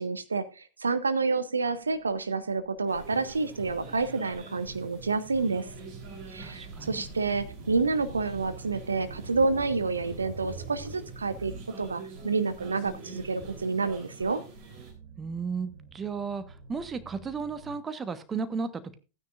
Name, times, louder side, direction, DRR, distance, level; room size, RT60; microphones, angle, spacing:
voice 1, 0.0-5.7 6.3-11.5 11.8-14.4, right 4 dB, 75° right, 14 dB, 0.7 m, -29 dB
sound 1, 1.5-12.3 12.6-17.8, right 3 dB, 60° right, 3.7 m, -48 dB
sound 2, 2.9-14.9, right 3 dB, 45° right, 3.6 m, -45 dB
voice 2, 6.4-7.0 15.2-18.9, right 5 dB, 20° right, 11 dB, 1.1 m, -34 dB
15.5 x 9.5 x 2.5 m, 0.30 s
figure-of-eight pair, 90°, 0 cm